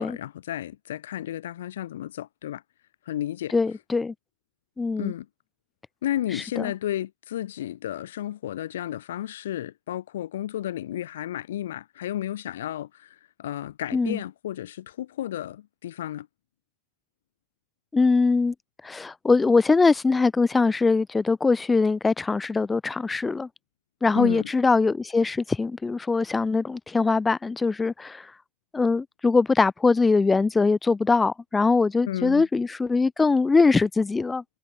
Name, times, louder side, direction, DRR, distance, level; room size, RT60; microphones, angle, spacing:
voice 1, 0.0-2.6 3.1-3.5 5.0-5.3 6.0-16.3 24.2-24.5 32.1-32.5, left 12 dB, 85° left, 1.8 m, -32 dB
voice 2, 3.5-4.1 4.8-5.1 6.6-6.7 13.9-14.2 17.9-18.5 18.8-23.5 24.0-28.3 28.7-34.4, left 4 dB, 15° left, 0.7 m, -22 dB
hypercardioid pair, 90°, 0 cm